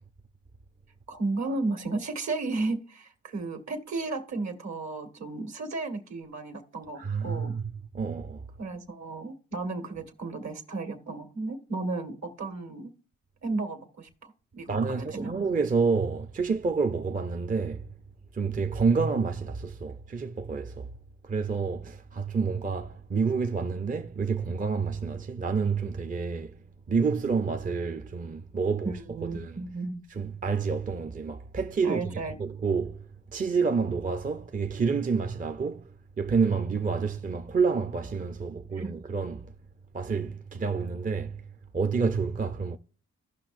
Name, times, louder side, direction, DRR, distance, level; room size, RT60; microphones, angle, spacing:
voice 1, 1.1-7.5 8.6-12.9 13.4-15.3 28.8-30.0 31.8-32.4 38.7-38.9, right 3 dB, 65° right, 1.7 m, -34 dB
voice 2, 7.0-7.6 7.9-8.4 14.7-17.9 18.3-20.9 21.2-26.6 26.9-29.6 30.2-39.5 39.9-41.4 41.7-42.8, right 5 dB, 25° right, 0.5 m, -29 dB
15.0 x 5.7 x 2.6 m
cardioid pair, 65°, 30 cm